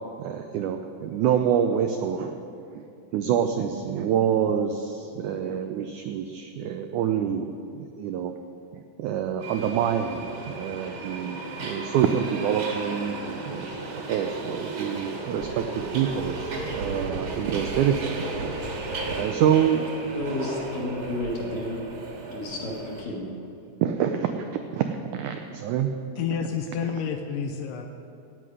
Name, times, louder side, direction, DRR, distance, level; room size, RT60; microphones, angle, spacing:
voice 1, 0.2-2.3 2.7-2.8 3.1-7.5 7.7-8.3 8.7-10.3 10.6-13.2 13.5-18.5 19.1-19.8 23.8-25.9, right 8 dB, 85° right, 6 dB, 1.7 m, -26 dB
Subway metro underground, 9.4-23.0, right 3 dB, 55° right, 2.4 m, -34 dB
voice 2, 20.1-21.8 22.3-23.3, left 2 dB, 55° left, -3 dB, 3.2 m, -31 dB
voice 3, 26.2-27.9, left 7 dB, 80° left, 5 dB, 2.1 m, -29 dB
15.5 x 9.6 x 4.9 m, 2.6 s
omnidirectional pair, 4.1 m